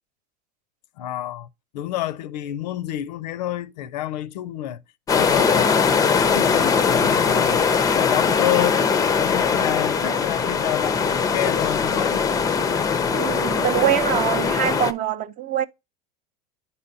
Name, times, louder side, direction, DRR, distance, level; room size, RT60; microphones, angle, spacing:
voice 1, 1.0-1.5 1.7-4.8 5.1-7.6 7.9-8.8 9.2-12.2, left 13 dB, 90° left, 0.5 m, -28 dB
sound 1, 5.1-14.9, left 5 dB, 15° left, 0.4 m, -21 dB
voice 2, 13.1-15.6, right 11 dB, 40° right, 0.5 m, -24 dB
9.4 x 4.1 x 2.6 m
supercardioid pair, 110°, 21 cm